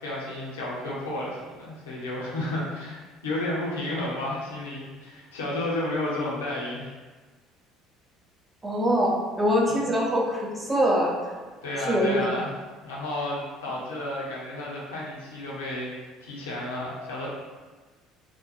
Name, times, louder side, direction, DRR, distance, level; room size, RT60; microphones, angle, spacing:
voice 1, 0.0-6.9 9.7-9.9 11.6-12.5 12.8-15.9 16.2-17.3, left 1 dB, 80° left, -5 dB, 0.6 m, -32 dB
voice 2, 8.6-11.1 11.9-12.3, equal, 20° right, -3 dB, 0.6 m, -23 dB
2.6 x 2.2 x 2.6 m, 1.3 s
figure-of-eight pair, 60°, 0 cm